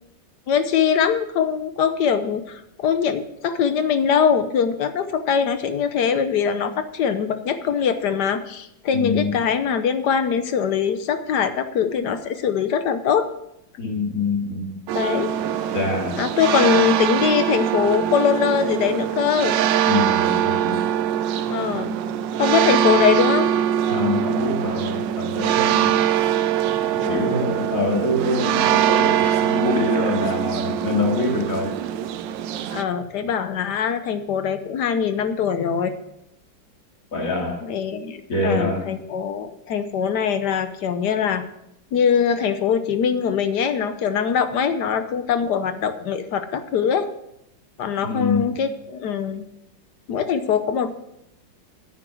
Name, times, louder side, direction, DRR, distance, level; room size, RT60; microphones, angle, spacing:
voice 1, 0.5-13.3 14.9-15.4 16.2-19.6 21.5-22.0 22.4-23.5 27.0-27.5 32.7-36.0 37.6-41.5 41.9-47.1 47.8-49.5 50.1-50.9, left 7 dB, 65° left, 10 dB, 1.3 m, -22 dB
voice 2, 8.9-9.4 13.8-14.8 15.7-16.2 19.9-20.8 23.9-25.9 27.1-31.7 37.1-37.6 38.3-38.9 48.0-48.6, left 2 dB, 45° left, 0 dB, 2.8 m, -25 dB
sound 1, 14.9-32.8, right 10 dB, 80° right, 1.3 m, -22 dB
10.0 x 9.0 x 6.2 m, 0.80 s
omnidirectional pair, 2.0 m